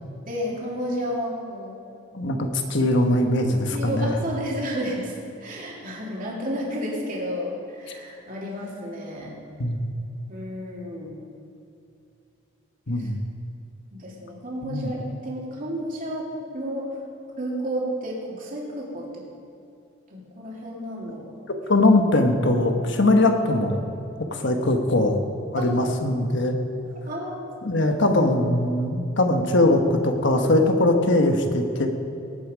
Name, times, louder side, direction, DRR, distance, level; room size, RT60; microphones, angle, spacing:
voice 1, 0.3-1.7 3.7-5.1 5.4-9.4 10.3-11.2 13.0-13.1 13.9-16.9 17.4-19.2 20.1-21.3 25.6-25.7 26.8-27.5 29.3-29.4, equal, 40° right, -3 dB, 2.8 m, -31 dB
voice 2, 2.1-4.1 9.6-9.8 12.9-13.2 14.6-14.9 21.7-23.8 24.3-25.2 25.5-26.5 27.6-31.9, left 1 dB, 60° left, 4 dB, 1.3 m, -21 dB
18.5 x 8.2 x 5.1 m, 2.7 s
head